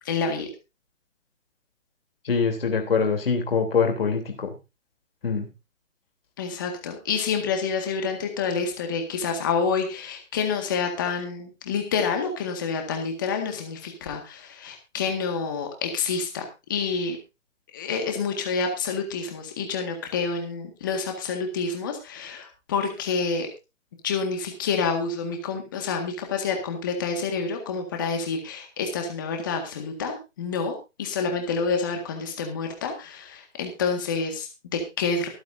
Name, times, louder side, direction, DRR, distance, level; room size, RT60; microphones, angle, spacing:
voice 1, 0.0-0.5 6.4-17.2 17.7-23.5 24.0-35.3, left 5 dB, 15° left, 4 dB, 1.8 m, -28 dB
voice 2, 2.2-4.5 5.2-5.5, left 5 dB, 50° left, 4 dB, 3.5 m, -24 dB
24.5 x 8.6 x 2.7 m, 0.27 s
hypercardioid pair, 175°, 38 cm